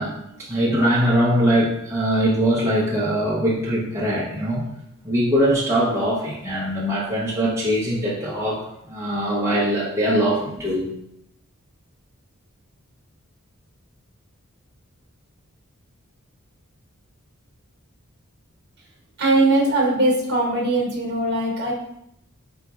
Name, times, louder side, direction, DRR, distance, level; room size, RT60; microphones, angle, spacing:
voice 1, 0.0-4.7 5.0-8.6 8.9-10.9, equal, 15° right, -7 dB, 0.6 m, -22 dB
voice 2, 19.2-21.7, right 2 dB, 50° right, -3 dB, 1.0 m, -20 dB
4.0 x 3.9 x 2.3 m, 0.77 s
head